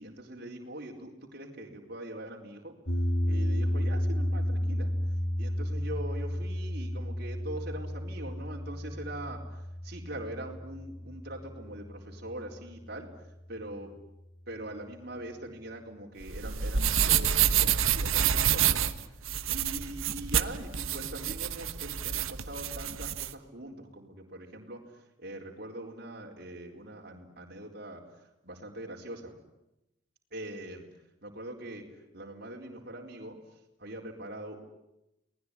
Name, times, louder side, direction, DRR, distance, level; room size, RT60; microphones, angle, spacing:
voice 1, 0.0-2.7 3.3-4.9 5.4-13.1 13.5-13.9 14.5-18.9 19.5-29.3 30.3-30.9 31.2-31.9 32.1-33.4 33.8-34.6, right 1 dB, 50° right, 0 dB, 4.3 m, -42 dB
sound 1, 2.9-13.1, equal, 60° left, 2.7 m, -32 dB
sound 2, 16.2-23.3, right 9 dB, 80° right, 1.3 m, -28 dB
30.0 x 20.0 x 10.0 m, 0.89 s
head